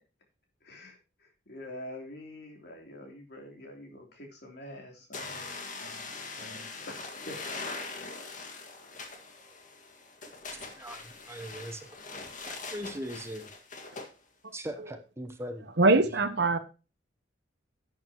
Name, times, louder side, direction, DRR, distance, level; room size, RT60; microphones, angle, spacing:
voice 1, 0.6-5.5 5.8-7.4 7.9-8.1, left 1 dB, 60° left, 3.3 m, -46 dB
sound 1, 5.1-14.1, left 3 dB, 45° left, 1.8 m, -42 dB
voice 2, 10.5-11.9 12.5-13.5 14.5-15.7, equal, 15° right, 0.9 m, -40 dB
voice 3, 15.8-16.6, right 2 dB, 65° right, 1.1 m, -22 dB
11.5 x 9.1 x 3.0 m
head